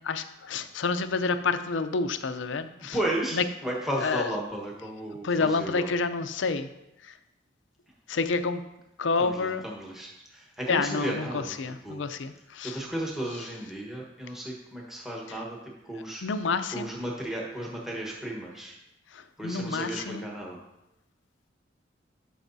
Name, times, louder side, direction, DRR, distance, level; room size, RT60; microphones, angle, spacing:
voice 1, 0.0-3.0 3.3-3.4 4.0-4.3 5.2-6.7 7.0-7.1 8.1-8.6 9.0-9.6 10.7-12.8 16.2-16.9 19.1-20.3, left 4 dB, 75° left, 10 dB, 0.5 m, -29 dB
voice 2, 2.9-5.9 9.2-11.6 11.8-12.0 12.6-16.2 16.7-18.8 19.4-20.6, right 1 dB, ahead, -2 dB, 1.2 m, -34 dB
12.0 x 6.3 x 2.7 m, 0.91 s
head